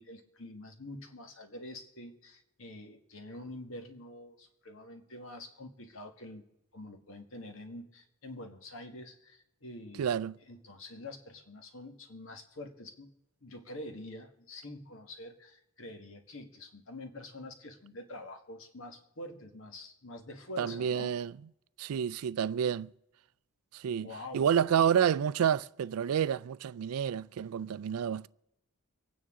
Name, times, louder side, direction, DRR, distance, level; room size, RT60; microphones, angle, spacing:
voice 1, 0.0-6.4 6.7-10.1 10.5-13.1 13.4-21.1 24.0-24.8, left 1 dB, 65° left, 1.7 m, -46 dB
voice 2, 10.0-10.4 20.6-21.3 21.8-22.9 23.7-24.1 24.3-28.3, right 8 dB, 90° right, 0.4 m, -29 dB
25.0 x 9.4 x 3.7 m
head